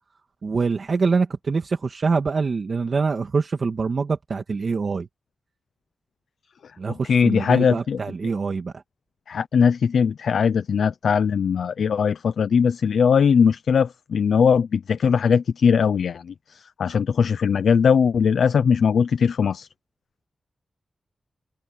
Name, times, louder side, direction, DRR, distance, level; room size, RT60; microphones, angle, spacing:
voice 1, 0.4-5.1 6.8-8.8, right 4 dB, 55° right, 2.0 m, -24 dB
voice 2, 7.1-8.0 9.3-19.7, left 6 dB, 85° left, 0.6 m, -20 dB
open air
cardioid pair, 80°, 0 cm